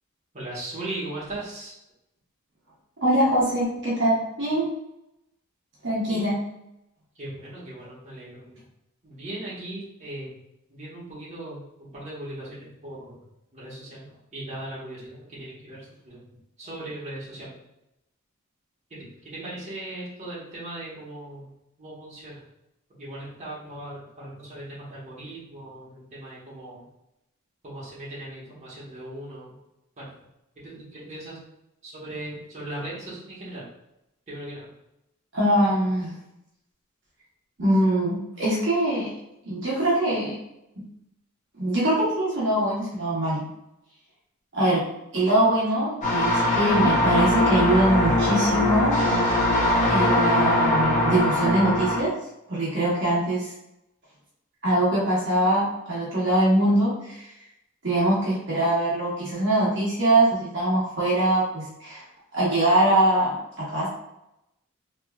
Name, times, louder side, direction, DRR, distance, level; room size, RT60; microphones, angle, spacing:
voice 1, 0.3-1.7 6.1-6.2 7.2-8.6 9.0-10.3 10.7-13.2 13.5-16.2 16.6-17.6 18.9-19.0 19.2-21.5 21.8-22.4 23.0-26.8 27.6-29.5 30.0-30.1 30.6-31.4 31.8-33.6 34.3-34.7, right 1 dB, 35° right, -8 dB, 1.2 m, -38 dB
voice 2, 3.0-4.6 5.8-6.4 35.3-36.1 37.6-39.1 39.4-40.4 40.8-40.9 41.5-43.5 44.5-44.8 45.1-49.0 49.9-52.1 52.5-53.5 54.6-57.3 57.8-62.0 62.3-63.9, right 1 dB, 60° right, -7 dB, 1.1 m, -23 dB
sound 1, 46.0-52.0, left 1 dB, 35° left, 0.7 m, -21 dB
3.4 x 3.0 x 2.3 m, 0.86 s
head